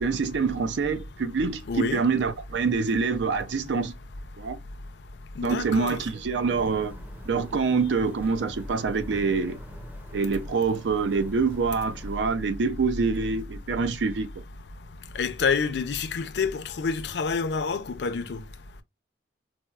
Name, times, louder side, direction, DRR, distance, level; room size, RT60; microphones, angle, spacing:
voice 1, 0.0-3.9 4.4-4.6 5.4-7.0 7.3-9.6 10.1-14.4, right 4 dB, 85° right, 0.4 m, -26 dB
voice 2, 1.7-2.0 5.4-6.0 15.2-18.4, left 5 dB, 70° left, 0.4 m, -28 dB
sound 1, 6.5-12.2, equal, 10° right, 0.5 m, -45 dB
4.1 x 2.0 x 2.3 m
head